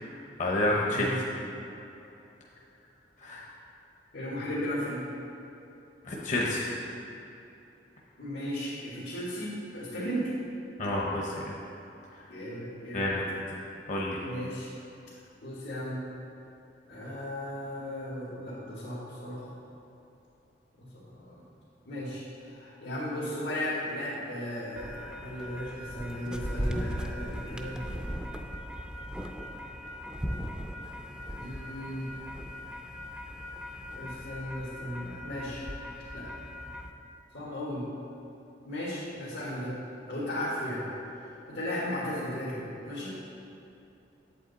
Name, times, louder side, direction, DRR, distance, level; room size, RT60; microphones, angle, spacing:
voice 1, 0.1-1.1 3.2-3.4 6.0-6.7 10.8-11.4 12.9-13.6 13.9-14.2, left 1 dB, 45° left, -3 dB, 0.8 m, -29 dB
voice 2, 4.1-5.1 8.2-10.3 12.3-13.1 14.2-14.7 15.4-16.0 16.9-19.5 20.8-21.4 21.9-27.9 31.3-32.1 34.0-35.7 36.1-36.3 37.3-37.9 38.6-39.8 40.1-40.8 41.5-43.1, equal, 85° left, -9 dB, 1.8 m, -35 dB
sound 1, 24.8-36.9, equal, 5° right, 0.4 m, -38 dB
8.0 x 7.8 x 4.1 m, 2.9 s
head